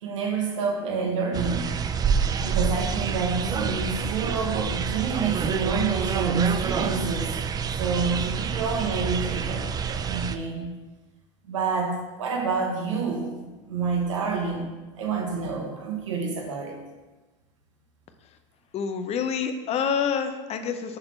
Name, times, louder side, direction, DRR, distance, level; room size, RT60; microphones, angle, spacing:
voice 1, 0.0-1.7 2.4-7.4 7.8-10.7 11.4-14.7 15.0-16.8, right 5 dB, 90° right, 1 dB, 1.2 m, -28 dB
sound 1, 1.3-10.4, right 6 dB, 25° right, 0.4 m, -27 dB
voice 2, 18.7-21.0, left 7 dB, 40° left, 8 dB, 0.7 m, -27 dB
6.5 x 4.3 x 4.4 m, 1.2 s
hypercardioid pair, 95°, 16 cm